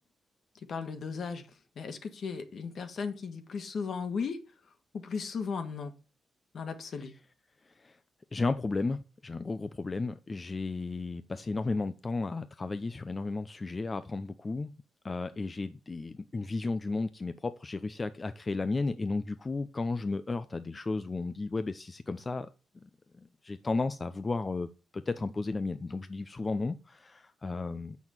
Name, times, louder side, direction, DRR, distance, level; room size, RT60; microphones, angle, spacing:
voice 1, 0.7-1.5 1.7-4.4 4.9-5.9 6.5-7.1, left 5 dB, 65° left, 1.8 m, -36 dB
voice 2, 8.3-14.7 15.0-22.5 23.2-24.7 24.9-28.0, left 3 dB, 30° left, 0.6 m, -33 dB
7.1 x 6.2 x 7.4 m
cardioid pair, 80°, 0 cm